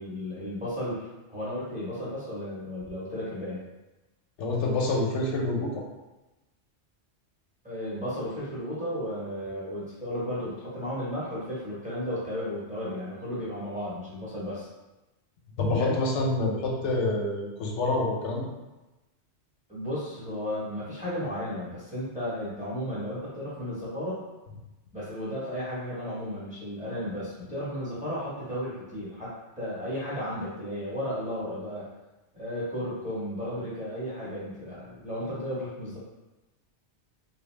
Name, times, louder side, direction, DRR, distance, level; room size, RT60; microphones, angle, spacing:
voice 1, 0.0-3.7 7.6-14.7 15.8-16.0 19.7-24.2 24.9-31.9 32.3-36.0, equal, 5° right, -9 dB, 0.9 m, -34 dB
voice 2, 4.4-5.7 15.6-18.5, left 2 dB, 85° left, -1 dB, 0.9 m, -27 dB
2.7 x 2.2 x 3.1 m, 1.0 s
omnidirectional pair, 1.2 m